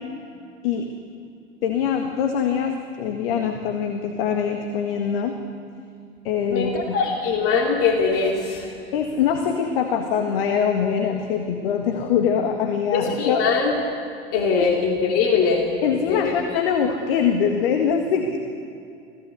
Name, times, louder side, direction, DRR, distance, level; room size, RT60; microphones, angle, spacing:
voice 1, 1.6-5.3 6.2-7.0 8.9-13.5 14.6-14.7 15.8-18.5, left 7 dB, 60° left, 4 dB, 1.9 m, -23 dB
voice 2, 6.5-8.7 12.9-13.8 14.3-15.7 16.1-16.3, left 5 dB, 45° left, 1 dB, 2.9 m, -22 dB
25.5 x 16.5 x 8.3 m, 2.5 s
figure-of-eight pair, 85°, 33 cm